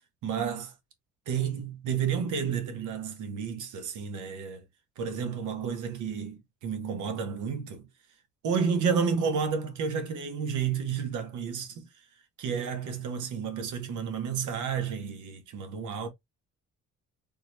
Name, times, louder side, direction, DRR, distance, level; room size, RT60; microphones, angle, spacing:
voice 1, 0.2-0.7 1.3-4.6 5.0-7.9 8.4-11.9 12.4-16.1, right 6 dB, 80° right, 0.8 m, -31 dB
3.5 x 2.1 x 3.0 m
cardioid pair, 90°, 30 cm